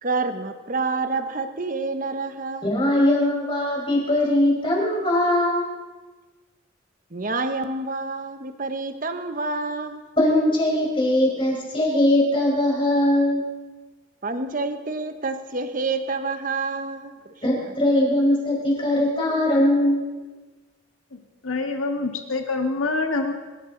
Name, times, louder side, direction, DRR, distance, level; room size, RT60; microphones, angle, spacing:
voice 1, 0.0-2.7 7.1-10.0 14.2-17.2, right 3 dB, 40° right, 8 dB, 1.1 m, -28 dB
voice 2, 2.6-5.6 10.2-13.4 17.4-20.0, left 1 dB, 25° left, -3 dB, 5.0 m, -20 dB
voice 3, 21.1-23.3, left 3 dB, 85° left, 4 dB, 1.8 m, -26 dB
25.5 x 14.5 x 4.0 m, 1.3 s
head